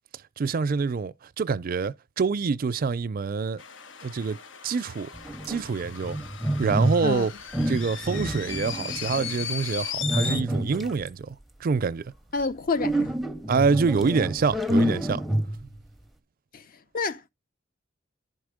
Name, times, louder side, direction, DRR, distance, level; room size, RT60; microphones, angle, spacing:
voice 1, 0.4-3.6 4.0-4.4 4.6-5.1 5.5-6.2 6.6-7.3 7.7-12.1 13.5-15.2, right 5 dB, 50° right, 0.4 m, -26 dB
sound 1, 3.6-10.4, left 7 dB, 80° left, 0.8 m, -37 dB
sound 2, 5.1-7.2 7.5-9.4 10.0-11.1 12.8-15.8, equal, ahead, 0.6 m, -28 dB
voice 2, 12.3-13.1 16.5-16.6 16.9-17.3, left 4 dB, 50° left, 0.6 m, -28 dB
11.0 x 4.3 x 4.8 m
head